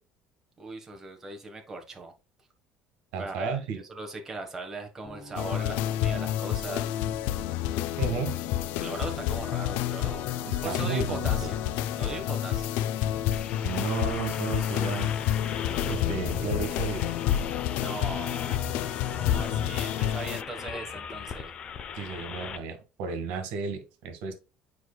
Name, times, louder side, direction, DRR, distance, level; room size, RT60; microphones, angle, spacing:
voice 1, 0.6-2.1 3.2-6.9 8.8-11.6 12.0-12.7 17.7-21.5, right 2 dB, 15° right, 1.3 m, -39 dB
voice 2, 3.1-3.8 8.0-8.4 10.5-11.5 13.6-15.1 15.9-17.1 21.9-24.3, right 5 dB, 85° right, 1.6 m, -33 dB
sound 1, 5.0-21.0, left 1 dB, 15° left, 1.8 m, -51 dB
sound 2, 5.4-20.4, left 12 dB, 85° left, 0.4 m, -29 dB
sound 3, 13.3-22.6, left 6 dB, 35° left, 0.7 m, -37 dB
9.5 x 4.7 x 2.3 m
cardioid pair, 160°, 3 cm